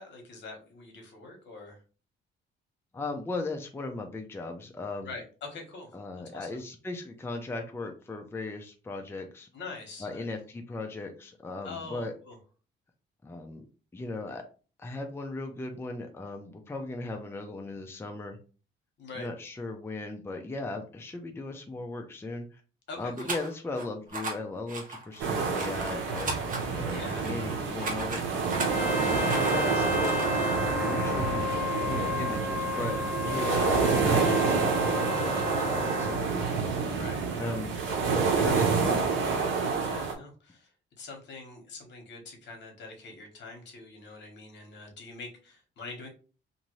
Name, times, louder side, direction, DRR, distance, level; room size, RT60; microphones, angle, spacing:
voice 1, 0.0-1.8 5.0-6.0 6.3-6.6 9.5-10.3 11.6-12.4 19.0-19.3 22.9-23.3 26.9-27.3 36.9-37.5 39.8-40.7 41.0-46.1, left 3 dB, 65° left, 2 dB, 1.2 m, -44 dB
voice 2, 2.9-5.1 5.9-9.5 10.0-12.1 13.2-13.6 13.9-14.4 14.8-18.4 19.2-22.6 23.0-26.3 26.7-30.2 30.8-36.6 37.4-37.8 38.1-39.1, left 2 dB, 10° left, 4 dB, 0.5 m, -37 dB
sound 1, 23.2-23.8 24.1-24.3 24.7-28.7 29.2-30.3, right 3 dB, 45° right, 1.0 m, -37 dB
sound 2, 25.2-40.1, right 5 dB, 80° right, 0.8 m, -28 dB
Trumpet, 28.6-36.2, left 5 dB, 10° right, 0.8 m, -33 dB
2.6 x 2.6 x 3.0 m, 0.36 s
cardioid pair, 90°, 20 cm